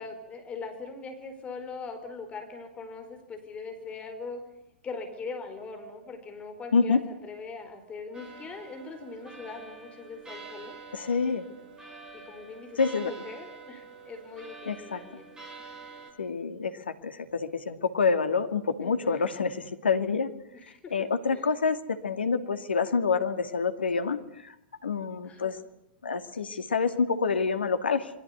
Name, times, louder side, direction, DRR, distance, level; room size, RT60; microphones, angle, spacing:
voice 1, 0.0-4.4 4.8-10.8 12.1-15.3 18.8-19.3 20.5-21.5 25.2-25.6, left 4 dB, 20° left, 6 dB, 4.9 m, -41 dB
sound 1, 8.1-16.1, right 4 dB, 15° right, 7.7 m, -47 dB
voice 2, 10.9-11.4 12.8-13.1 14.7-15.0 16.2-20.3 20.9-24.5 24.8-25.6 26.0-28.2, left 5 dB, 75° left, 10 dB, 2.2 m, -27 dB
27.5 x 22.0 x 8.3 m, 0.83 s
figure-of-eight pair, 100°, 6 cm